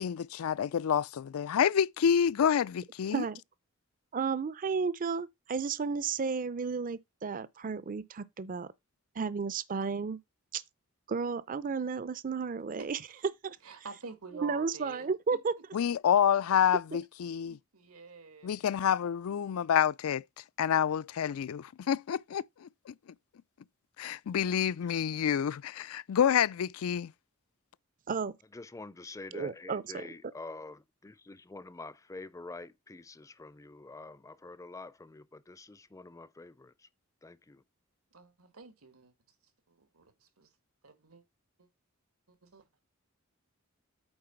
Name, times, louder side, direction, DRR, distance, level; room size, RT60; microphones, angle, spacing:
voice 1, 0.0-3.2 15.7-17.6 18.4-20.2 20.6-22.9 24.0-27.1, left 8 dB, 80° left, 0.4 m, -28 dB
voice 2, 4.1-8.7 9.2-10.2 10.5-10.6 11.1-13.0 13.4-13.6 14.4-15.5 28.1-28.3 29.3-29.8, right 5 dB, 40° right, 0.5 m, -33 dB
voice 3, 12.8-13.2 13.6-15.1 17.5-18.6 38.1-39.1 39.7-40.5 40.8-41.2 41.6-41.7 42.4-42.6, right 4 dB, 90° right, 2.0 m, -48 dB
voice 4, 28.5-36.9 37.2-37.6, left 3 dB, 15° left, 0.5 m, -47 dB
8.8 x 3.9 x 5.8 m
head